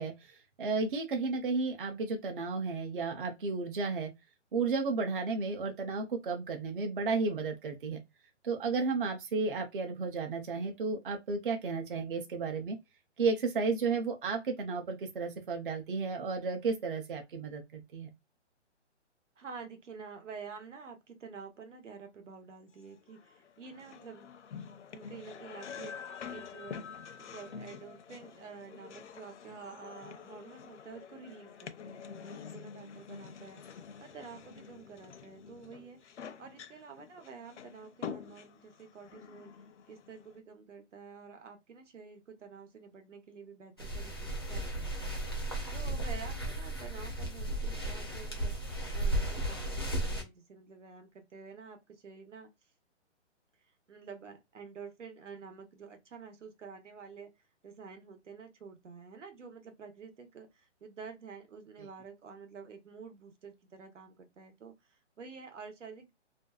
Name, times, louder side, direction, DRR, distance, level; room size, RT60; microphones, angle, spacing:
voice 1, 0.0-4.1 4.5-8.0 8.4-12.8 13.2-18.1, right 4 dB, 45° right, 0.6 m, -33 dB
voice 2, 19.4-24.3 24.9-36.0 36.4-39.5 39.9-45.2 45.7-48.6 48.9-52.5 53.9-57.3 57.6-66.1, right 5 dB, 80° right, 1.0 m, -49 dB
sound 1, 22.8-40.4, left 7 dB, 75° left, 0.6 m, -47 dB
sound 2, 43.8-50.2, right 1 dB, 20° left, 0.4 m, -35 dB
2.6 x 2.2 x 2.3 m
hypercardioid pair, 165°, 36 cm